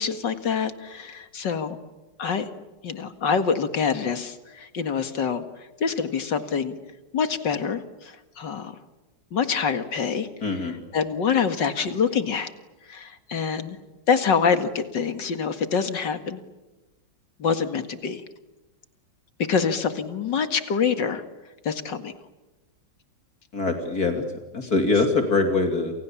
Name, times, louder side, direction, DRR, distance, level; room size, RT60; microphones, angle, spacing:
voice 1, 0.0-1.8 2.2-2.5 2.8-6.8 7.1-8.8 9.3-12.5 12.9-13.8 14.1-16.4 17.4-18.2 19.5-21.2 21.6-22.1, left 6 dB, 70° left, 9 dB, 2.6 m, -26 dB
voice 2, 10.4-10.7 23.5-24.2 24.5-25.9, left 3 dB, 55° left, 4 dB, 3.2 m, -23 dB
29.5 x 28.0 x 7.3 m, 1.1 s
omnidirectional pair, 2.0 m